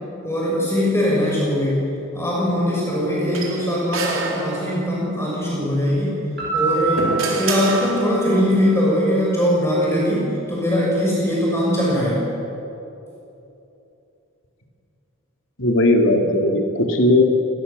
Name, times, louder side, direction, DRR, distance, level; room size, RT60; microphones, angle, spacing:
voice 1, 0.2-1.8 2.1-6.2 6.5-12.2, equal, 10° left, -5 dB, 6.4 m, -21 dB
sound 1, 3.3-5.1 6.4-8.5, right 3 dB, 80° right, 3.9 m, -28 dB
Piano, 6.4-9.2, right 3 dB, 50° right, 7.2 m, -27 dB
voice 2, 15.6-17.2, left 1 dB, 70° left, 2 dB, 3.2 m, -17 dB
26.0 x 21.0 x 7.1 m, 2.9 s
head